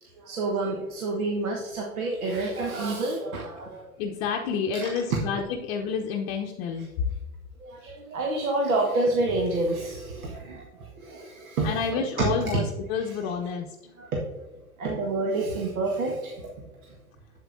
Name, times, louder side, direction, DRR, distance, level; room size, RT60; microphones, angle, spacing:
voice 1, 0.0-3.9 4.8-5.2 7.6-12.5 13.0-13.3 14.0-14.2 14.8-16.5 16.8-17.0, right 2 dB, 70° right, 0 dB, 1.3 m, -29 dB
voice 2, 4.0-6.9 11.6-12.6 12.9-13.8, left 6 dB, 45° left, 3 dB, 0.7 m, -29 dB
8.0 x 7.8 x 2.5 m, 1.1 s
figure-of-eight pair, 95°, 45 cm